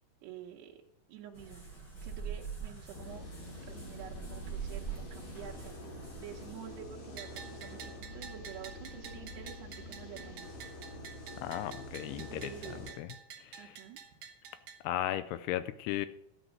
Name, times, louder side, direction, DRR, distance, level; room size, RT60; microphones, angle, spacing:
voice 1, 0.2-0.8 1.1-1.7 2.0-3.3 3.6-10.6 12.1-13.0 13.6-14.0, right 10 dB, 75° right, -2 dB, 3.0 m, -49 dB
sound 1, 1.3-6.8, right 6 dB, 25° left, 4.7 m, -44 dB
sound 2, 2.9-12.9, left 1 dB, 55° left, 3.4 m, -47 dB
Bell, 7.2-14.8, right 7 dB, 60° right, 2.1 m, -49 dB
voice 2, 11.4-12.5 13.0-13.1 13.4-13.7 14.8-16.1, left 13 dB, 80° left, 12 dB, 2.5 m, -35 dB
13.0 x 8.1 x 6.2 m, 0.79 s
omnidirectional pair, 5.0 m